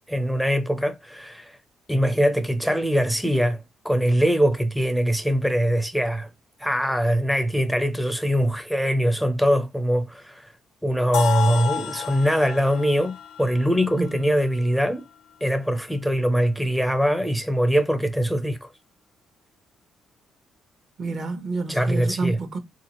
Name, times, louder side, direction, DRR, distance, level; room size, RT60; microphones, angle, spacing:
voice 1, 0.1-1.6 1.9-6.3 6.6-10.5 10.8-15.1 15.4-18.7 21.7-22.4, equal, ahead, 0.5 m, -22 dB
sound 1, 11.1-15.0, left 9 dB, 90° left, 0.6 m, -31 dB
voice 2, 13.9-14.3 21.0-22.6, right 3 dB, 55° right, 1.0 m, -29 dB
3.5 x 2.8 x 2.9 m
cardioid pair, 90°, 0 cm